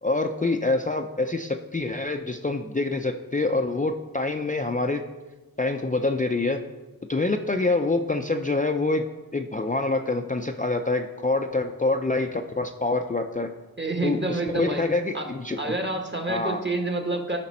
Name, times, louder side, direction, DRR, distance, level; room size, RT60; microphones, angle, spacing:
voice 1, 0.0-5.0 5.6-6.6 7.1-9.0 9.3-13.5 14.0-15.7 16.3-16.6, left 2 dB, 20° left, 4 dB, 0.4 m, -26 dB
voice 2, 13.8-14.8 15.1-15.2 15.6-17.4, right 2 dB, 30° right, 3 dB, 1.2 m, -28 dB
13.0 x 5.1 x 4.3 m, 1.2 s
wide cardioid pair, 70°, 37 cm